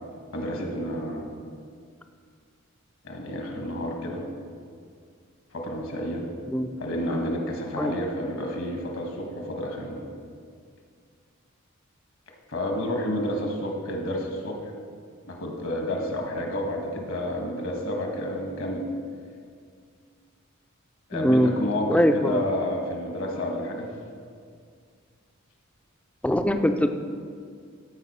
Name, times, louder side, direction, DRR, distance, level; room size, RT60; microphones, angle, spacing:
voice 1, 0.3-1.2 3.0-4.2 5.5-6.2 6.8-10.0 12.5-14.7 15.2-18.8 21.1-23.9, left 1 dB, 70° left, 1 dB, 1.4 m, -30 dB
voice 2, 21.1-21.6 21.9-22.4 26.2-26.9, equal, 5° left, 7 dB, 0.3 m, -22 dB
13.5 x 4.9 x 4.2 m, 2.1 s
head